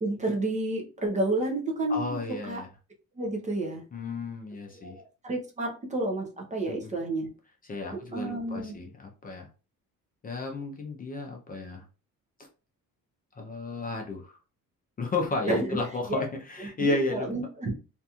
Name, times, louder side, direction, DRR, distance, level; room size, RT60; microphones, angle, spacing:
voice 1, 0.0-2.2 2.5-2.6 3.2-3.8 4.8-7.3 8.1-8.8 15.5-15.8 16.1-16.2 16.6-17.7, right 2 dB, 20° right, 1 dB, 0.5 m, -30 dB
voice 2, 1.9-2.7 3.9-5.0 6.7-6.9 7.7-9.5 10.2-11.8 13.4-14.4 15.0-17.3, left 2 dB, 25° left, 1 dB, 0.5 m, -32 dB
2.8 x 2.5 x 2.3 m, 0.32 s
cardioid pair, 155°, 33 cm